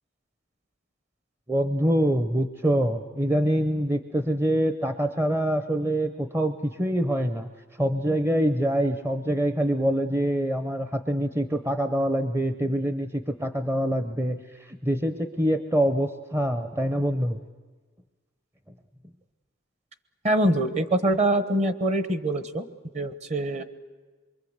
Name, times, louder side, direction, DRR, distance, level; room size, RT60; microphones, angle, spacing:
voice 1, 1.5-17.4, equal, 10° right, 9 dB, 0.7 m, -25 dB
voice 2, 20.2-22.6 22.9-23.6, right 1 dB, 35° right, 12 dB, 1.1 m, -24 dB
24.5 x 23.0 x 8.1 m, 1.3 s
head